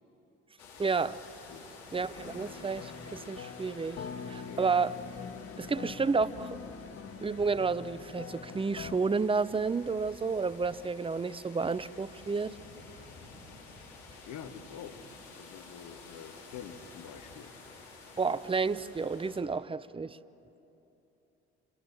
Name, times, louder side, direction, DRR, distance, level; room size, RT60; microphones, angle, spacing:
sound 1, 0.6-19.4, left 3 dB, 80° left, 3.3 m, -51 dB
voice 1, 0.8-1.2 1.9-5.0 5.6-6.6 7.2-12.5 18.2-20.2, right 4 dB, 15° right, 17 dB, 0.7 m, -31 dB
sound 2, 2.1-9.0, left 6 dB, 45° left, 1.5 m, -44 dB
voice 2, 14.2-14.9 15.4-17.5, left 8 dB, 60° left, 8 dB, 1.6 m, -46 dB
26.5 x 26.0 x 7.5 m, 3.0 s
hypercardioid pair, 55°, 32 cm